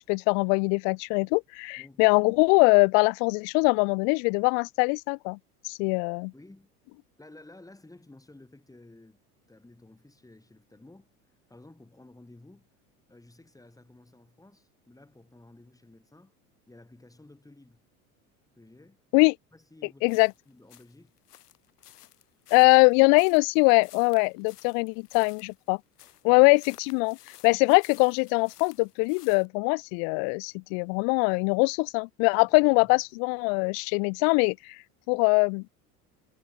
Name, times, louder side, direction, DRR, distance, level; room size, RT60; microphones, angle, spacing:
voice 1, 0.0-5.4 5.6-6.3 19.1-19.3 20.0-20.3 22.5-25.8 26.2-27.2 27.4-34.8 35.1-35.6, left 40 dB or more, 50° left, 0.4 m, -22 dB
voice 2, 6.3-6.7 7.2-9.2 9.5-11.1 11.5-12.7 13.1-16.3 16.7-17.8 18.6-19.0 19.5-21.1 22.6-22.7 26.2-26.4 32.5-32.9, left 2 dB, 5° left, 5.0 m, -53 dB
sound 1, 20.1-29.5, left 13 dB, 80° left, 3.4 m, -54 dB
hypercardioid pair, 85°, 46 cm